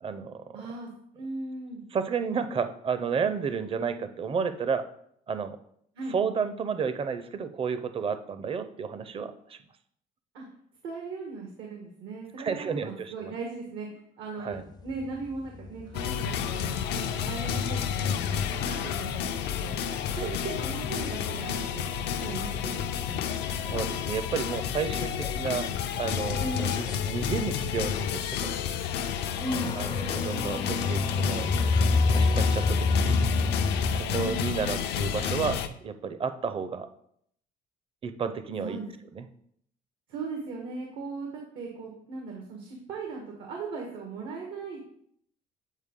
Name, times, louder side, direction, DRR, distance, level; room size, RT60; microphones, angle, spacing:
voice 1, 0.0-0.6 1.9-4.9 5.3-5.6 6.1-9.6 12.4-13.3 14.4-14.6 20.1-20.3 20.6-20.7 23.5-25.7 26.0-28.5 29.8-31.5 32.2-33.2 33.9-36.9 38.0-38.8 39.1-39.3, right 6 dB, 35° right, 10 dB, 0.6 m, -32 dB
voice 2, 0.5-1.8 5.9-6.2 10.3-10.4 10.8-19.7 20.1-23.2 26.4-26.7 29.4-29.7 34.1-34.4 38.6-38.8 40.1-44.8, right 3 dB, 85° right, 0 dB, 1.4 m, -38 dB
sound 1, 14.5-21.2 21.5-22.6 23.0-23.1 23.5-23.6 23.8-25.7 26.0-34.0, left 3 dB, 25° left, 0.4 m, -30 dB
sound 2, 15.9-35.7, left 8 dB, 85° left, 0.5 m, -30 dB
8.2 x 4.4 x 3.7 m, 0.68 s
cardioid pair, 110°, 17 cm